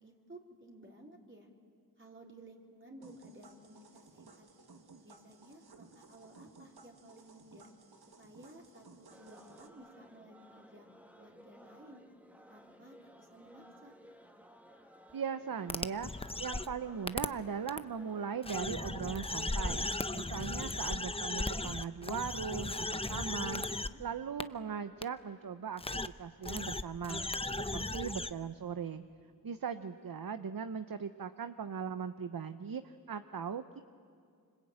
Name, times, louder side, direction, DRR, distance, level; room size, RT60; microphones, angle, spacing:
voice 1, 0.0-1.5 2.0-4.5 5.0-7.7 8.2-10.9 11.2-12.0 12.5-13.9 23.7-24.0, right 1 dB, 30° right, -1 dB, 3.9 m, -55 dB
sound 1, 3.0-9.7, right 4 dB, 85° right, 1.8 m, -58 dB
sound 2, 9.1-19.7, equal, 5° right, 1.9 m, -58 dB
voice 2, 15.1-16.1 16.4-19.8 20.1-23.6 24.0-25.8 26.2-27.2 27.6-29.0 29.4-33.8, right 6 dB, 65° right, 10 dB, 0.8 m, -39 dB
sound 3, 15.7-16.7 17.1-17.3 17.7-17.8 18.4-23.9 24.4-24.5 25.0-25.1 25.8-26.1 26.4-28.3, left 2 dB, 15° left, 0.8 m, -36 dB
26.5 x 25.0 x 8.8 m, 2.3 s
wide cardioid pair, 55°, 37 cm